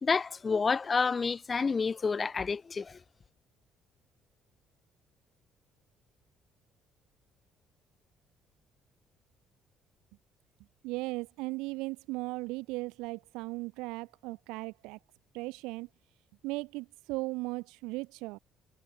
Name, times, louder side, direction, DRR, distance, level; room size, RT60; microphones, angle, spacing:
voice 1, 0.0-3.0, left 5 dB, 35° left, 2.3 m, -29 dB
voice 2, 10.8-15.0 15.3-15.9 16.4-18.4, right 23 dB, 70° right, 4.6 m, -37 dB
figure-of-eight pair, 50°, 0 cm